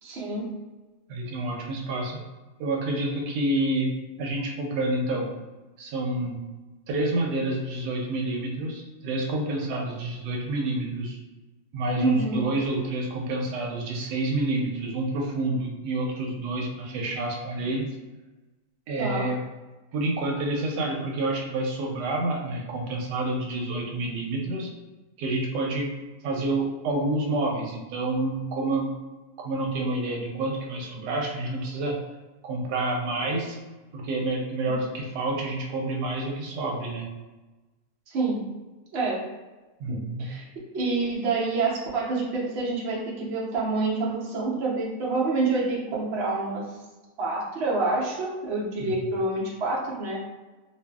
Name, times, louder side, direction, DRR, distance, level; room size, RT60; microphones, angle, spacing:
voice 1, 0.0-0.5 12.0-12.4 19.0-19.3 38.1-38.4 38.9-39.2 39.9-40.4 40.7-46.6 47.2-50.2, right 3 dB, 55° right, -4 dB, 0.8 m, -27 dB
voice 2, 1.1-2.2 2.6-3.9 4.2-5.3 5.8-6.4 6.9-11.2 11.7-17.9 18.9-19.4 19.9-24.7 25.2-25.9 26.2-28.9 29.4-32.0 32.4-33.6 33.9-37.1 39.8-40.3 48.8-48.9, right 2 dB, 90° right, 0 dB, 1.2 m, -28 dB
2.5 x 2.5 x 2.3 m, 1.2 s
omnidirectional pair, 1.7 m